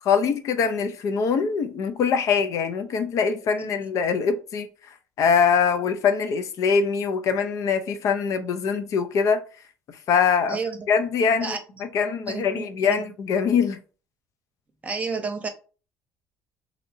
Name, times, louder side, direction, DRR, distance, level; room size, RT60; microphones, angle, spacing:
voice 1, 0.0-4.7 5.2-9.4 10.1-10.6 10.9-11.6 11.9-13.8, left 6 dB, 60° left, 0.5 m, -23 dB
voice 2, 3.8-4.1 10.5-10.8 11.4-13.1 14.8-15.5, right 4 dB, 25° right, 0.8 m, -32 dB
4.0 x 2.8 x 2.7 m
cardioid pair, 105°, 6 cm